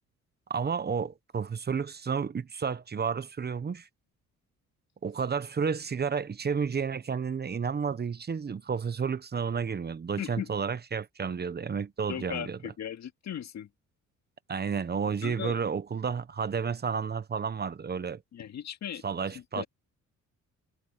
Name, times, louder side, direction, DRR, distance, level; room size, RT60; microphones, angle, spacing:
voice 1, 0.5-3.9 5.0-12.7 14.5-18.2 19.0-19.6, right 6 dB, 35° right, 1.0 m, -31 dB
voice 2, 10.2-10.5 12.1-13.7 15.2-15.6 18.3-19.0 19.6-19.7, left 10 dB, 65° left, 2.2 m, -37 dB
cardioid pair, 90°, 30 cm